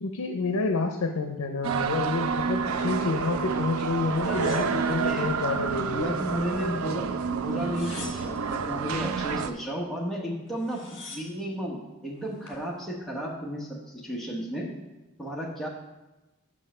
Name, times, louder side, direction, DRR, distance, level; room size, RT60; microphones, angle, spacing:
voice 1, 0.0-6.2, left 3 dB, 80° left, 5 dB, 0.6 m, -29 dB
sound 1, 1.6-9.5, right 6 dB, 70° right, 0.4 m, -29 dB
sound 2, 4.2-5.5 6.0-6.8 7.5-8.6 10.1-10.2 10.5-11.5 12.1-12.6, left 4 dB, 55° left, 1.7 m, -46 dB
voice 2, 4.3-5.3 5.9-14.7 15.2-15.7, equal, ahead, -4 dB, 1.2 m, -33 dB
6.3 x 5.5 x 5.5 m, 1.0 s
head